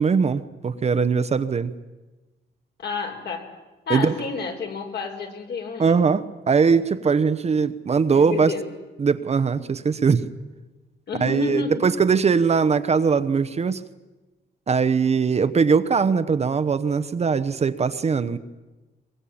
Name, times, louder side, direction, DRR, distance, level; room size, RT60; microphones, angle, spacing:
voice 1, 0.0-1.7 3.9-4.1 5.8-8.5 9.0-10.2 11.2-13.8 14.7-18.4, right 5 dB, 35° right, 12 dB, 0.9 m, -21 dB
voice 2, 2.8-3.5 3.9-6.0 8.1-8.7 11.1-11.9, left 4 dB, 65° left, 3 dB, 4.3 m, -30 dB
22.5 x 22.0 x 8.7 m, 1.2 s
cardioid pair, 125°, 19 cm